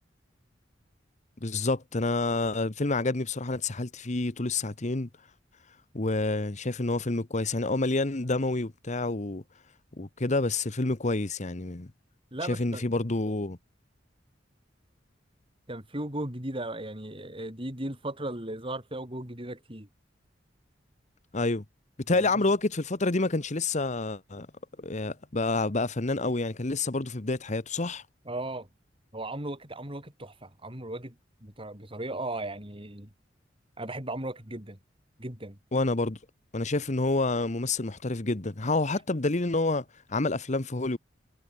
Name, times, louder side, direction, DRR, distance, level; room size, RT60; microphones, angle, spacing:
voice 1, 1.4-5.1 5.9-9.4 10.0-11.9 12.5-13.6 21.3-21.6 22.1-24.5 24.8-28.0 35.7-36.2 36.5-41.0, left 2 dB, 40° left, 1.2 m, -28 dB
voice 2, 12.3-12.8 15.7-19.9 22.1-22.5 28.3-28.7 29.1-31.2 31.4-33.1 33.8-34.8 35.2-35.6, right 1 dB, 30° right, 5.8 m, -36 dB
head